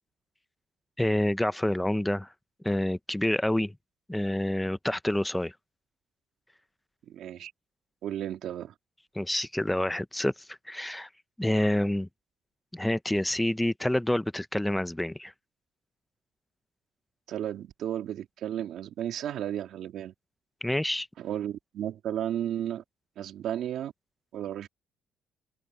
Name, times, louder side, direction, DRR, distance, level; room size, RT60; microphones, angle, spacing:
voice 1, 1.0-2.3 2.6-3.7 4.1-5.5 9.1-11.1 11.4-12.1 12.7-15.3 20.6-21.1, left 1 dB, 5° left, 0.8 m, -28 dB
voice 2, 7.1-7.5 8.0-8.7 17.3-20.1 21.2-22.8 23.2-23.9 24.3-24.7, right 10 dB, 65° right, 2.7 m, -33 dB
open air
cardioid pair, 115°, 0 cm